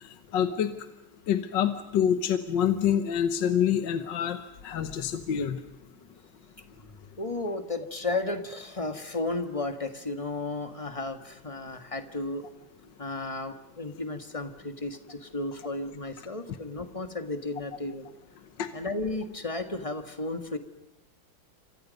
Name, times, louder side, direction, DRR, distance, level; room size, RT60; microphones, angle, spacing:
voice 1, 0.3-0.7 1.3-5.6 18.6-18.7, left 9 dB, 65° left, 9 dB, 1.8 m, -26 dB
voice 2, 7.1-12.5 13.0-18.1 18.7-20.6, left 2 dB, 15° left, 7 dB, 1.6 m, -33 dB
28.5 x 26.0 x 5.4 m, 0.90 s
omnidirectional pair, 2.2 m